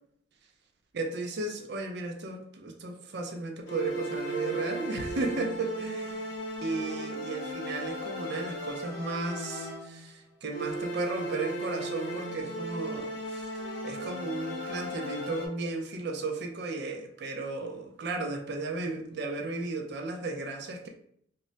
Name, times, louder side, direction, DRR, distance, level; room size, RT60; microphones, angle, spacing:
voice 1, 0.9-6.3 6.6-13.5 13.8-20.9, right 3 dB, 60° right, 4 dB, 0.5 m, -34 dB
sound 1, 3.7-10.1 10.5-15.5, equal, 70° left, 0.7 m, -36 dB
2.2 x 2.1 x 3.8 m, 0.67 s
head